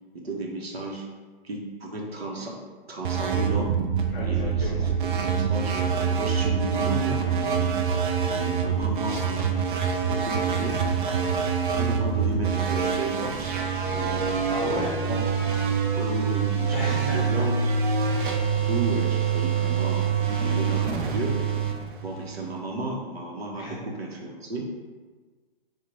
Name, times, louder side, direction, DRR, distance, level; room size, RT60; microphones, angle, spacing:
voice 1, 0.1-1.1 1.4-2.6 2.9-3.8 4.2-4.9 5.1-7.8 8.3-9.5 10.0-10.8 11.7-13.5 13.9-14.5 15.1-15.2 15.9-17.6 18.5-21.4 22.0-24.6, right 1 dB, 85° right, -1 dB, 0.8 m, -33 dB
sound 1, 3.0-22.6, right 6 dB, 55° right, 0.5 m, -25 dB
voice 2, 4.1-4.9 14.5-15.0 16.7-17.5 23.5-23.8, left 1 dB, 15° left, -6 dB, 0.5 m, -32 dB
2.9 x 2.2 x 3.8 m, 1.4 s
figure-of-eight pair, 130°, 30 cm